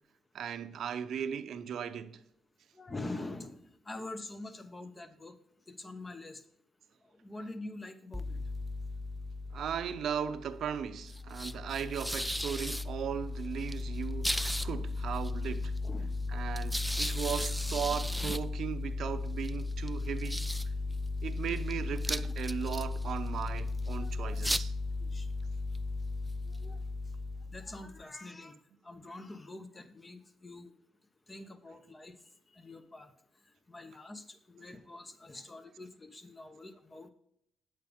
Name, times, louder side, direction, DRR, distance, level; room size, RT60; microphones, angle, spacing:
voice 1, 0.3-2.2 9.5-15.7 16.3-20.7 21.2-24.7, right 8 dB, 65° right, 0.8 m, -37 dB
voice 2, 2.7-5.4 5.7-6.4 7.1-8.4 15.8-16.2 20.9-21.0 23.9-24.4 25.0-25.3 26.5-26.8 27.5-28.6 28.8-30.7 31.3-32.2 32.5-33.1 33.7-37.1, left 2 dB, 20° left, 1.0 m, -45 dB
sound 1, 8.1-28.0, left 2 dB, ahead, 0.4 m, -35 dB
8.9 x 8.1 x 3.6 m
cardioid pair, 90°, 0 cm